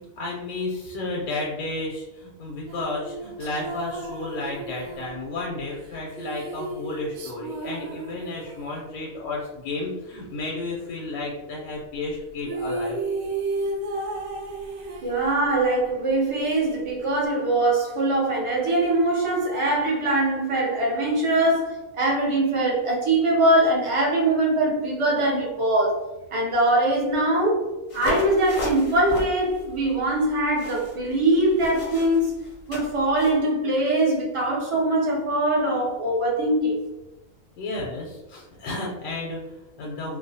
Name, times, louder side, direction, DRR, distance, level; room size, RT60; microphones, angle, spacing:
voice 1, 0.0-13.0 15.0-15.1 37.6-40.2, left 2 dB, 85° left, -2 dB, 1.1 m, -32 dB
sound 1, 2.7-8.8 12.1-12.2 12.4-15.6, right 2 dB, 75° right, 1.0 m, -33 dB
voice 2, 15.0-26.0 26.3-27.6 27.9-32.3 32.7-36.8, right 1 dB, 55° right, -3 dB, 0.3 m, -22 dB
sound 2, 27.9-33.4, left 1 dB, 50° left, 0.5 m, -35 dB
2.7 x 2.0 x 2.6 m, 1.0 s
omnidirectional pair, 1.5 m